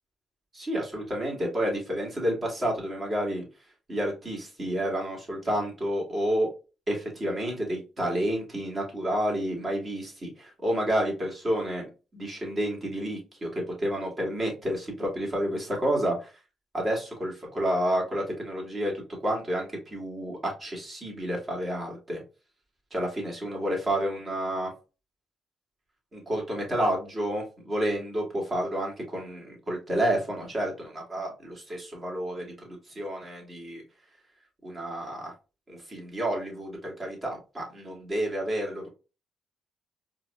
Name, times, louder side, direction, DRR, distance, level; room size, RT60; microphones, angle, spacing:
voice 1, 0.5-3.4 3.9-6.5 6.9-11.8 12.1-16.3 16.7-22.2 22.9-24.7 26.1-33.8 34.6-35.3 35.7-38.9, right 1 dB, 35° right, -1 dB, 2.1 m, -30 dB
4.5 x 2.7 x 2.2 m, 0.31 s
cardioid pair, 90°, 0 cm